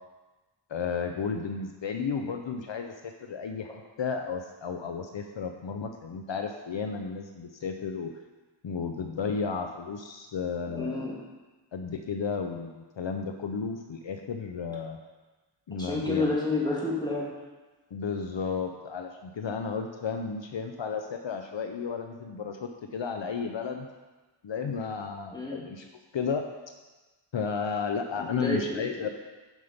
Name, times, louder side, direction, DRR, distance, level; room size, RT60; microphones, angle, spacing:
voice 1, 0.7-3.7 4.0-8.1 8.6-11.1 11.7-15.0 15.7-16.4 17.9-23.9 24.4-25.9 26.1-26.4 27.3-29.1, left 5 dB, 70° left, 5 dB, 0.7 m, -33 dB
voice 2, 10.7-11.2 15.8-17.3 25.3-25.6 28.2-29.1, left 2 dB, 10° left, -5 dB, 2.5 m, -30 dB
9.9 x 5.5 x 5.1 m, 1.2 s
wide cardioid pair, 70°, 47 cm